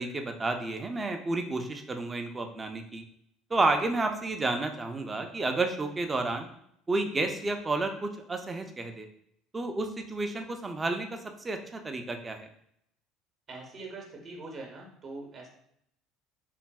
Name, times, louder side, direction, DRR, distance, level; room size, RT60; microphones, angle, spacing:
voice 1, 0.0-3.0 3.5-6.5 6.9-9.1 9.5-11.2 11.4-12.5, right 2 dB, 25° right, 5 dB, 0.5 m, -31 dB
voice 2, 13.5-15.5, right 3 dB, 45° right, 1 dB, 0.8 m, -43 dB
3.2 x 2.6 x 2.2 m, 0.70 s
hypercardioid pair, 75°, 0 cm